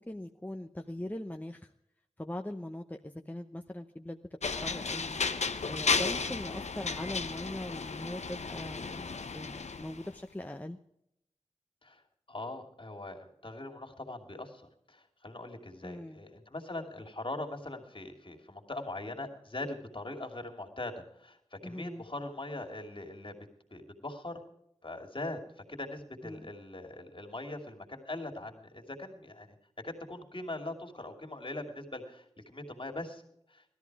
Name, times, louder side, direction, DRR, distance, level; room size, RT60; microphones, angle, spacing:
voice 1, 0.0-1.7 2.2-5.2 5.7-9.1 9.3-10.8 15.8-16.2 21.6-22.0 26.2-26.5, left 1 dB, 15° left, 4 dB, 0.8 m, -41 dB
sound 1, 4.4-10.1, left 4 dB, 85° left, 0.9 m, -34 dB
voice 2, 12.3-24.4 24.8-25.4 25.7-29.5 29.8-33.2 33.5-33.6, left 2 dB, 50° left, 2 dB, 2.7 m, -41 dB
17.5 x 13.5 x 4.8 m, 0.76 s
wide cardioid pair, 50°, 11 cm